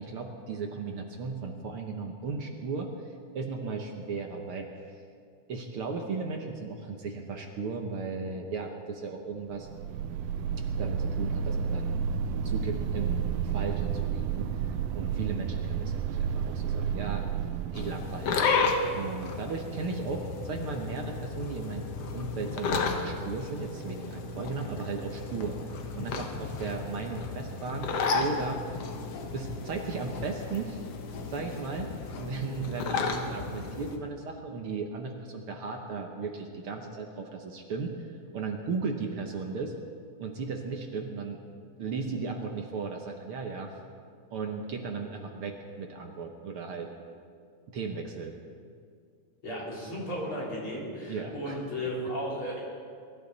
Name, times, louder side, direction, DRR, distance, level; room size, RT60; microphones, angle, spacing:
voice 1, 0.0-4.7 5.5-9.7 10.8-12.0 12.4-17.3 17.6-18.4 18.9-21.9 22.1-28.6 29.3-30.8 31.3-31.9 32.2-39.7 40.2-41.4 41.8-43.7 44.3-46.9 47.7-48.3 51.1-51.6, right 4 dB, 65° right, 2 dB, 1.5 m, -36 dB
sound 1, 9.5-18.8, right 7 dB, 80° right, 1.5 m, -31 dB
sound 2, 17.7-34.0, left 4 dB, 60° left, 1.9 m, -33 dB
voice 2, 49.4-52.6, equal, 40° left, -6 dB, 4.5 m, -34 dB
23.5 x 12.5 x 4.1 m, 2.2 s
omnidirectional pair, 3.6 m